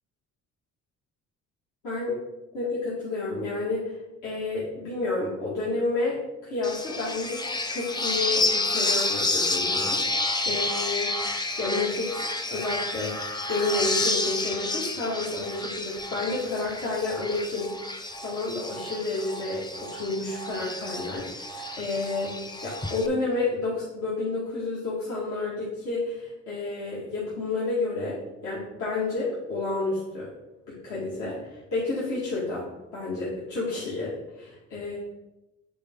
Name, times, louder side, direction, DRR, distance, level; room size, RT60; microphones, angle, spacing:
voice 1, 1.8-2.2 2.5-3.9 4.2-13.2 13.5-17.9 18.2-22.4 22.6-28.2 28.4-30.3 30.7-32.7 32.9-35.0, left 3 dB, 85° left, -8 dB, 2.4 m, -30 dB
sound 1, 6.6-23.1, left 2 dB, 15° left, 0.6 m, -30 dB
8.5 x 4.7 x 3.8 m, 0.97 s
cardioid pair, 90°, 30 cm